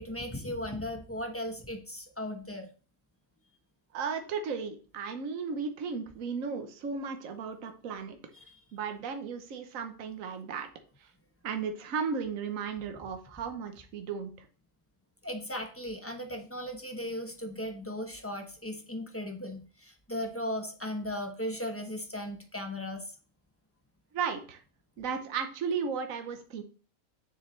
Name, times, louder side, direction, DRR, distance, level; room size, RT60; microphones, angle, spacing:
voice 1, 0.0-2.7 8.3-8.5 15.2-23.0, left 1 dB, 10° left, 4 dB, 0.9 m, -37 dB
voice 2, 3.9-8.2 8.7-10.7 11.4-14.5 24.1-24.6 25.0-26.6, right 6 dB, 65° right, 6 dB, 1.3 m, -35 dB
7.1 x 6.9 x 3.2 m, 0.39 s
omnidirectional pair, 1.5 m